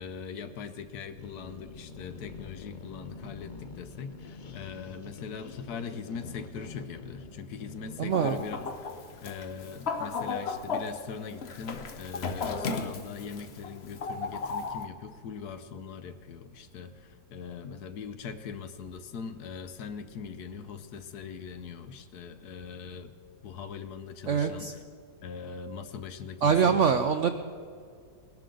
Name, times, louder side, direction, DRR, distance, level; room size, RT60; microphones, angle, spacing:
voice 1, 0.0-8.6 9.2-23.1 23.4-24.7 25.2-27.0, left 6 dB, 70° left, 10 dB, 1.2 m, -41 dB
sound 1, 1.2-8.4, left 4 dB, 85° left, 0.4 m, -46 dB
voice 2, 8.0-8.4 24.3-24.7 26.4-27.3, right 6 dB, 70° right, 8 dB, 0.7 m, -24 dB
Chicken rooster, 8.1-14.9, left 4 dB, 50° left, 0.8 m, -35 dB
21.0 x 12.0 x 3.8 m, 2.2 s
omnidirectional pair, 1.8 m